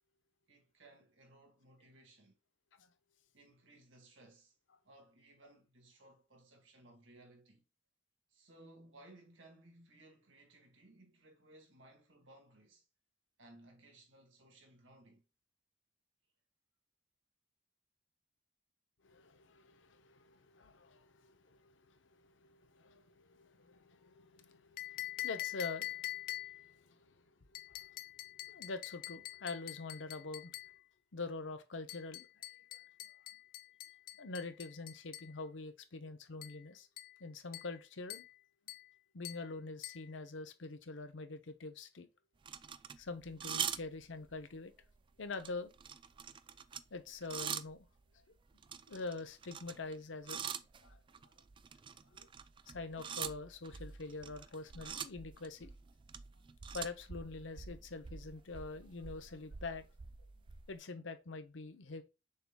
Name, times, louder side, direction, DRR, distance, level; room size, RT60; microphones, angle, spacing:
voice 1, 0.5-2.4 3.3-4.5 4.8-7.6 8.3-12.9 13.4-15.2, right 1 dB, 85° right, 1.8 m, -61 dB
voice 2, 19.0-27.1 27.6-28.0 28.4-30.6 31.1-32.8 34.2-36.9 37.2-38.2 39.1-42.1 43.0-44.7 45.2-45.7 46.9-47.9 48.9-50.4 50.8-51.0 52.1-52.3 52.7-55.7 56.7-59.9 60.7-62.0, left 3 dB, 80° left, 0.8 m, -45 dB
sound 1, 24.8-26.7 27.5-30.8 31.9-35.3 36.4-36.6 37.0-37.2 37.5-37.8 38.1-38.4 38.7-38.9 39.2-39.5 39.8-40.1, left 15 dB, 50° left, 0.4 m, -45 dB
sound 2, 42.5-44.4 44.7-45.0 45.3-47.8 48.5-50.0 50.2-60.8, right 7 dB, 25° right, 0.3 m, -45 dB
6.6 x 3.6 x 2.2 m
head